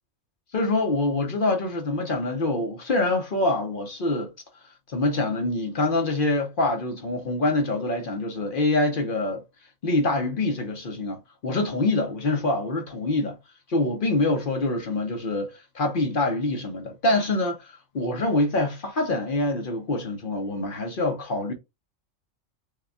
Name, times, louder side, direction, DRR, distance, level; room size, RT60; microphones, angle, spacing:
voice 1, 0.5-4.3 4.9-9.4 9.8-13.4 13.7-21.5, left 2 dB, 50° left, 0.8 m, -25 dB
6.5 x 2.3 x 2.3 m
omnidirectional pair, 1.4 m